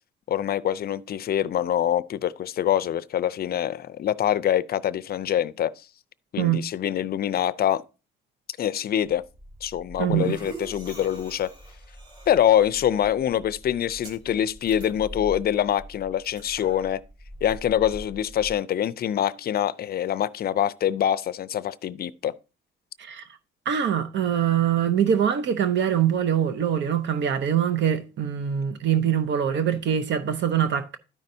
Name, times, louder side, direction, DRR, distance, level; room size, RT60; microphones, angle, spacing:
voice 1, 0.3-5.7 6.3-7.8 8.6-9.2 9.6-11.5 12.3-17.0 17.4-22.3, left 10 dB, 50° left, 0.4 m, -25 dB
sound 1, 9.0-18.5, right 1 dB, 25° right, 2.9 m, -43 dB
voice 2, 10.0-10.4 23.0-23.2 23.7-31.0, right 9 dB, 65° right, 0.7 m, -23 dB
13.0 x 5.3 x 2.7 m
cardioid pair, 90°, 20 cm